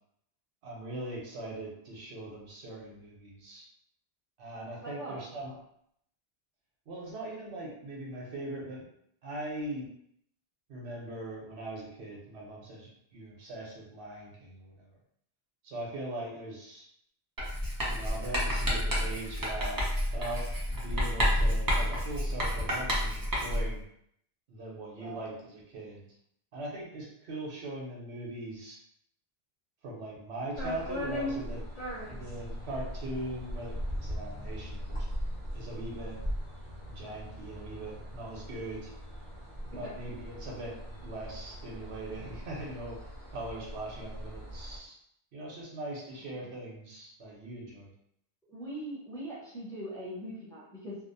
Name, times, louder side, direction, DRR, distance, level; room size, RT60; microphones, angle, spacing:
voice 1, 0.6-3.6 4.4-5.6 6.9-8.8 9.2-9.9 10.7-14.9 15.6-16.9 17.9-19.8 20.1-23.8 24.5-26.0 26.5-28.8 29.8-31.6 32.0-35.0 35.5-36.2 36.9-38.9 39.8-43.0 43.3-45.0 45.3-47.9, right 1 dB, 90° right, -3 dB, 1.0 m, -40 dB
voice 2, 4.8-5.3 25.0-25.3 39.7-39.9 46.2-46.5 48.5-51.0, right 1 dB, 5° left, -9 dB, 0.9 m, -41 dB
Writing, 17.4-23.8, equal, 30° right, 0.4 m, -29 dB
sound 1, 30.6-44.8, equal, 35° left, 0.8 m, -39 dB
2.7 x 2.0 x 2.6 m, 0.71 s
omnidirectional pair, 1.1 m